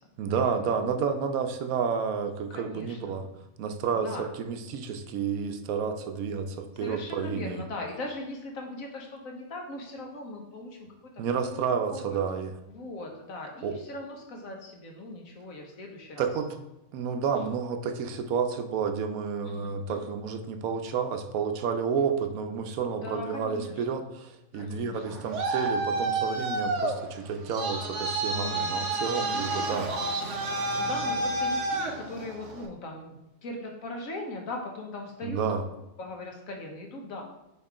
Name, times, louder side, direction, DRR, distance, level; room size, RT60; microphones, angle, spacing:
voice 1, 0.2-3.2 3.6-7.6 11.2-12.5 13.6-13.8 16.2-16.5 16.9-29.9 35.2-35.6, right 6 dB, 85° right, 7 dB, 1.1 m, -30 dB
voice 2, 2.5-3.2 3.9-4.3 6.8-11.6 11.9-12.2 12.7-16.6 19.4-20.1 23.0-24.0 24.5-25.2 28.3-29.0 29.3-29.8 30.8-35.5 36.0-37.2, left 2 dB, 70° left, 2 dB, 1.4 m, -40 dB
Traffic noise roadway noise, 24.9-32.7, right 2 dB, 60° right, 1.1 m, -30 dB
6.6 x 3.1 x 4.8 m, 0.91 s
omnidirectional pair, 1.5 m